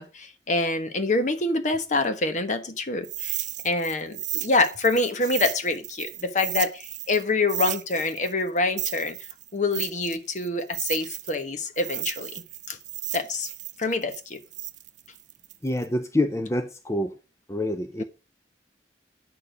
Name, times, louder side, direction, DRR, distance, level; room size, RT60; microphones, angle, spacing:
voice 1, 0.0-3.4 3.6-9.2 9.5-12.3 12.7-12.8 13.1-13.5 13.8-14.4 18.0-18.1, left 2 dB, 45° left, 1.2 m, -26 dB
sound 1, 3.0-7.2 7.5-11.4 11.8-15.9, right 15 dB, 45° right, 0.6 m, -34 dB
voice 2, 15.6-17.1 17.5-18.0, left 1 dB, 15° left, 0.7 m, -26 dB
9.8 x 6.8 x 5.0 m
head